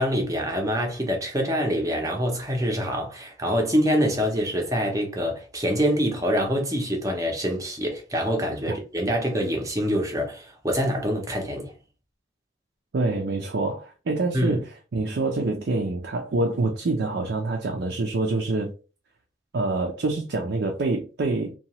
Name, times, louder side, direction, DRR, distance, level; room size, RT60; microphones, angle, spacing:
voice 1, 0.0-11.7 14.3-14.6, equal, 20° right, 0.6 m, -25 dB
voice 2, 12.9-14.7 14.9-18.7 19.5-21.5, right 2 dB, 70° right, 0.5 m, -26 dB
2.8 x 2.3 x 2.9 m
head